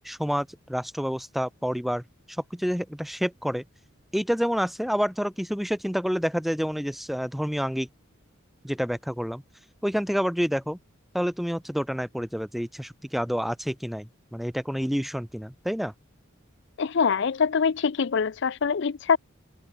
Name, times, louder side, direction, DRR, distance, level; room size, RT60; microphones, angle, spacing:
voice 1, 0.0-2.0 2.5-3.6 4.1-7.9 8.6-9.4 9.8-10.8 11.1-15.9, equal, ahead, 0.6 m, -28 dB
voice 2, 16.8-19.2, left 6 dB, 60° left, 0.5 m, -24 dB
head